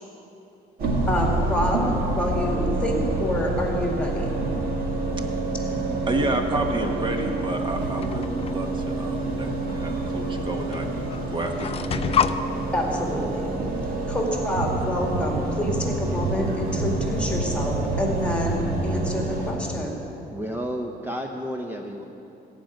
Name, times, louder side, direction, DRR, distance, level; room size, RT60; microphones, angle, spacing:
sound 1, 0.8-19.5, right 2 dB, 60° right, 2.0 m, -27 dB
voice 1, 1.1-4.3 12.7-13.5 14.1-20.0, left 1 dB, 5° left, 0 dB, 2.2 m, -27 dB
voice 2, 6.1-12.2, right 1 dB, 30° right, 4 dB, 1.3 m, -30 dB
sound 2, 8.0-8.5 9.7-9.8 10.7-10.8 11.1-12.4, left 8 dB, 35° left, 0.5 m, -26 dB
voice 3, 20.3-22.0, equal, 10° right, 3 dB, 0.7 m, -31 dB
15.0 x 5.2 x 9.2 m, 2.8 s
cardioid pair, 110°, 17 cm